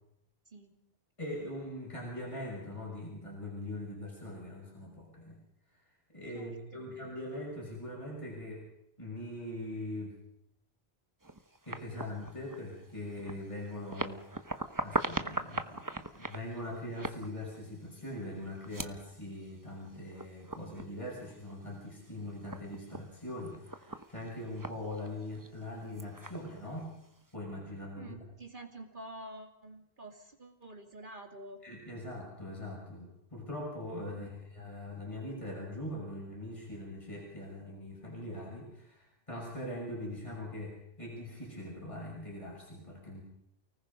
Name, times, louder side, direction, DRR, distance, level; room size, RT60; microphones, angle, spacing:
voice 1, 1.2-5.4 6.1-8.6 9.0-10.2 11.7-14.2 14.8-26.9 27.3-28.2 31.6-43.2, left 1 dB, 30° left, -3 dB, 6.2 m, -42 dB
voice 2, 6.3-6.9 28.0-31.6 34.1-34.4, right 1 dB, 50° right, 4 dB, 3.0 m, -48 dB
sound 1, 11.2-27.3, right 2 dB, 20° right, 1.1 m, -42 dB
29.5 x 19.5 x 5.4 m, 0.82 s
omnidirectional pair, 1.1 m